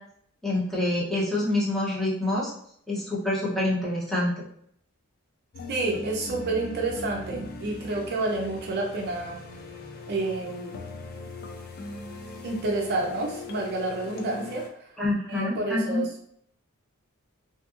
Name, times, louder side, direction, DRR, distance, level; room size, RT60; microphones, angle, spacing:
voice 1, 0.4-2.5 2.9-4.4 15.0-16.0, left 1 dB, ahead, -7 dB, 0.7 m, -26 dB
sound 1, 5.5-14.7, left 3 dB, 45° left, 0.4 m, -40 dB
voice 2, 5.7-9.4 10.1-10.7 12.4-14.9 15.3-16.2, right 2 dB, 50° right, 0 dB, 0.4 m, -29 dB
2.7 x 2.6 x 2.4 m, 0.67 s
head